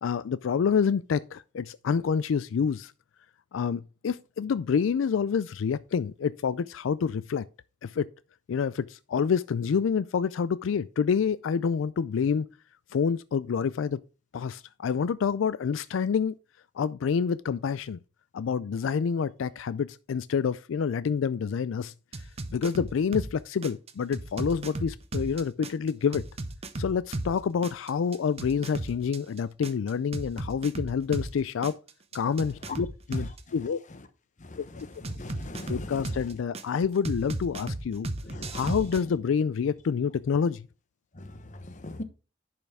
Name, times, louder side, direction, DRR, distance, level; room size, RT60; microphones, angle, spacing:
voice 1, 0.0-2.9 3.5-7.5 7.8-8.1 8.5-12.5 12.9-14.0 14.3-16.3 16.8-18.0 18.3-21.9 22.5-26.2 26.8-31.8 32.1-33.8 34.6-34.9 35.7-38.1 38.5-40.7, left 6 dB, 85° left, 0.4 m, -28 dB
sound 1, 22.1-23.3 23.6-27.3 27.6-31.3 31.6-33.4 35.0-36.6 37.0-39.0, right 2 dB, 30° right, 0.8 m, -34 dB
voice 2, 34.4-36.2 38.2-38.7 41.1-42.0, left 2 dB, 40° left, 1.0 m, -41 dB
10.5 x 5.7 x 3.4 m
head